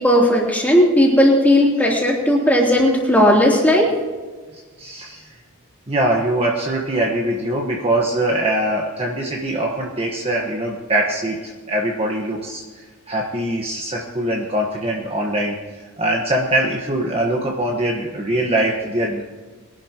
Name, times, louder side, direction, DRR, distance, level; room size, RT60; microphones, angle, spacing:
voice 1, 0.0-3.9, equal, 5° left, -3 dB, 3.1 m, -15 dB
voice 2, 4.5-5.4 5.9-19.2, right 1 dB, 25° right, -1 dB, 1.3 m, -22 dB
22.0 x 12.0 x 3.0 m, 1.4 s
head